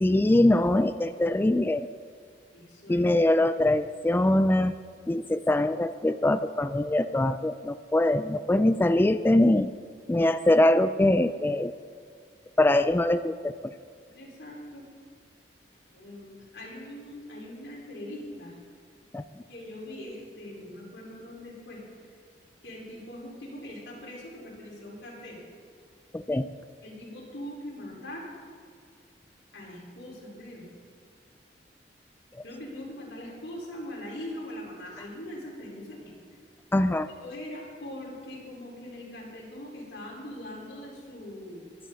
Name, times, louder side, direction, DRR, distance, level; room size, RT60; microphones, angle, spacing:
voice 1, 0.0-1.9 2.9-4.7 5.1-9.7 10.1-11.7 12.6-13.5 19.1-19.2 26.1-26.5 36.7-37.1, left 1 dB, 10° left, 11 dB, 0.3 m, -23 dB
voice 2, 2.5-3.4 14.1-14.9 15.8-18.5 19.5-21.8 22.6-25.4 26.8-28.3 29.5-30.6 32.4-36.1 37.2-41.7, left 1 dB, 80° left, -3 dB, 4.7 m, -41 dB
22.0 x 11.0 x 4.1 m, 2.2 s
head